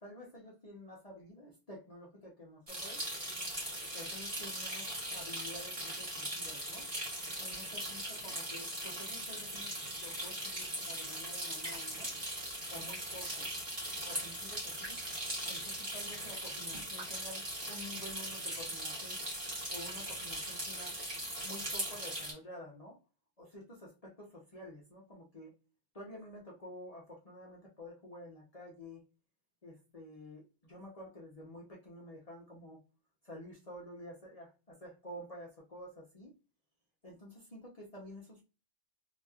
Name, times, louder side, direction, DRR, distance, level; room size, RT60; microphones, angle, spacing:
voice 1, 0.0-3.0 3.9-6.9 7.4-12.1 12.7-13.5 14.1-15.0 15.5-19.2 19.7-21.0 21.4-23.0 23.4-25.5 25.9-29.0 29.6-32.8 33.2-36.3 37.0-38.4, left 1 dB, 35° left, -3 dB, 0.8 m, -50 dB
sound 1, 2.7-22.3, right 1 dB, 30° right, 1.2 m, -40 dB
3.0 x 2.8 x 2.4 m, 0.31 s
omnidirectional pair, 1.2 m